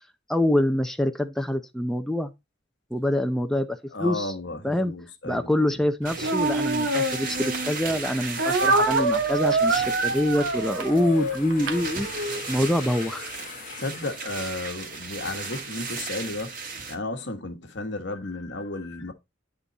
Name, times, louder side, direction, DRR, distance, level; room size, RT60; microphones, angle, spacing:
voice 1, 0.3-2.3 2.9-4.3 4.6-4.9 5.2-12.1 12.5-13.3, left 1 dB, ahead, 0.5 m, -25 dB
voice 2, 3.9-5.8 13.8-16.5 16.9-19.1, left 2 dB, 65° left, 1.3 m, -33 dB
sound 1, 6.0-16.9, right 4 dB, 45° right, 1.8 m, -36 dB
Speech, 6.2-7.7 8.4-12.4, right 2 dB, 85° right, 1.2 m, -25 dB
sound 2, 10.2-15.1, left 6 dB, 45° left, 1.0 m, -43 dB
9.8 x 3.8 x 4.0 m
head